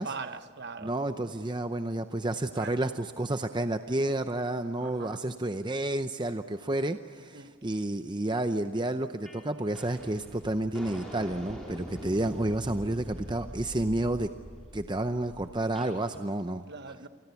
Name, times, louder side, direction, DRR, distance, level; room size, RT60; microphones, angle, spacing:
voice 1, 0.0-0.9 2.6-2.7 4.8-5.2 7.3-7.5 16.7-17.1, right 4 dB, 50° right, 1.1 m, -40 dB
voice 2, 0.8-14.3 14.7-16.6, right 1 dB, 20° right, 0.6 m, -30 dB
sound 1, 9.3-9.4 9.7-15.9, equal, ahead, 5.0 m, -44 dB
28.5 x 25.0 x 8.3 m
head